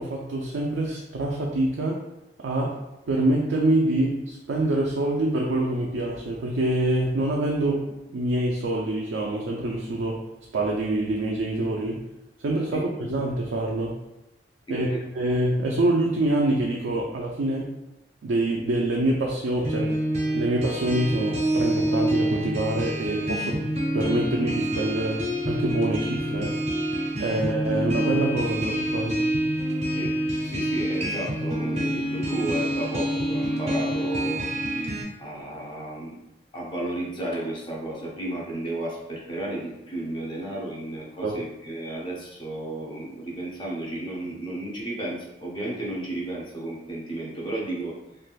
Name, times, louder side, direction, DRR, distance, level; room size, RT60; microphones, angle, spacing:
voice 1, 0.0-2.0 2.4-2.8 3.1-10.2 10.5-12.0 12.4-14.0 14.7-14.9 15.1-17.7 18.2-19.9 20.3-23.6 23.9-26.6 27.2-29.2 41.2-41.4, right 1 dB, 85° right, -2 dB, 0.4 m, -25 dB
voice 2, 14.7-15.0 27.3-27.5 29.9-30.1 30.4-34.4 35.2-36.2 36.5-48.0, right 1 dB, 25° left, -4 dB, 0.6 m, -33 dB
sound 1, 19.6-35.0, right 1 dB, 35° right, 0.6 m, -27 dB
3.2 x 2.5 x 2.3 m, 0.93 s
head